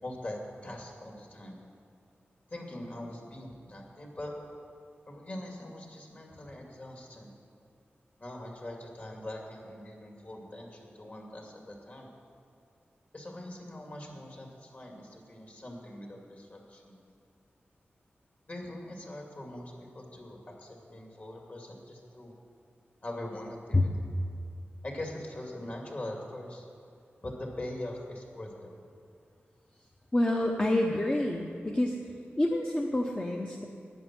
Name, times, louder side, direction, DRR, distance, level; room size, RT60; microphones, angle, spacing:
voice 1, 0.0-1.6 2.5-4.3 5.1-7.3 8.2-12.1 13.1-17.0 18.5-22.3 23.0-24.0 24.8-26.7 27.2-28.7, left 1 dB, 45° left, 0 dB, 2.3 m, -42 dB
voice 2, 30.1-32.0 32.4-33.6, left 1 dB, 25° left, 1 dB, 0.8 m, -27 dB
11.0 x 9.5 x 7.5 m, 2.5 s
wide cardioid pair, 95°, 4 cm